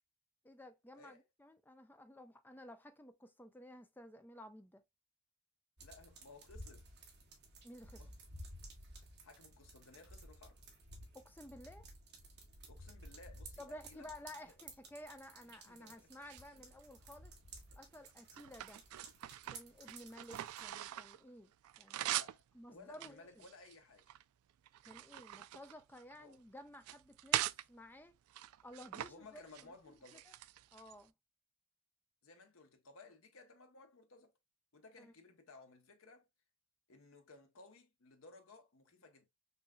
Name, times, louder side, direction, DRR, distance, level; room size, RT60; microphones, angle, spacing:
voice 1, 0.4-4.8 7.6-8.1 11.1-11.9 13.6-17.4 17.8-18.8 19.5-22.2 22.5-23.4 24.8-28.1 28.6-30.3 30.7-31.1 35.0-35.1, left 1 dB, 10° left, 0.5 m, -54 dB
voice 2, 5.8-6.9 8.0-8.1 9.0-10.6 12.7-14.1 15.7-16.1 16.5-16.6 22.0-24.1 26.2-26.4 29.1-30.3 32.2-34.3 34.7-36.3 36.9-39.3, left 3 dB, 70° left, 1.0 m, -59 dB
sound 1, 5.8-20.7, right 1 dB, 50° right, 1.6 m, -55 dB
sound 2, 16.1-17.1 17.7-21.2 21.5-22.4 22.9-24.2 24.7-26.3 26.7-27.6 28.3-29.1 29.4-29.7 30.0-31.0, right 13 dB, 85° right, 0.3 m, -42 dB
5.5 x 2.8 x 2.3 m
head